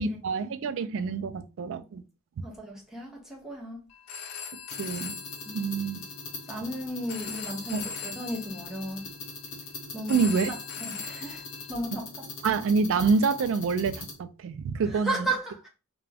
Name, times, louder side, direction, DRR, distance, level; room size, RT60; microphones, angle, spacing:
voice 1, 0.0-2.0 4.8-5.2 5.5-6.0 7.7-7.9 10.1-10.5 12.4-15.3, right 4 dB, 60° right, 0.3 m, -27 dB
voice 2, 2.4-3.9 5.4-5.7 6.5-9.1 9.9-10.6 10.8-12.1 12.5-12.6 14.9-15.7, right 1 dB, ahead, 0.7 m, -35 dB
Telephone, 3.9-11.7, left 6 dB, 90° left, 0.6 m, -41 dB
sound 1, 4.7-14.1, left 3 dB, 60° left, 0.8 m, -42 dB
2.4 x 2.2 x 3.2 m
head